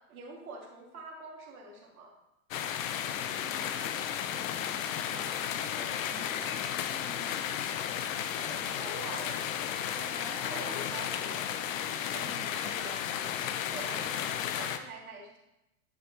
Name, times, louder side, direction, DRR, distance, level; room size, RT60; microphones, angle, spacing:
voice 1, 0.1-2.1 8.4-9.4 9.8-11.5 11.9-13.0 13.5-15.4, right 2 dB, 80° right, -2 dB, 2.2 m, -45 dB
sound 1, 2.5-14.8, left 9 dB, 70° left, 0.8 m, -34 dB
voice 2, 3.2-7.3 10.1-10.9 12.1-12.7 13.9-14.1, left 1 dB, 10° left, -2 dB, 1.6 m, -49 dB
10.0 x 5.9 x 2.9 m, 0.90 s
hypercardioid pair, 110°, 42 cm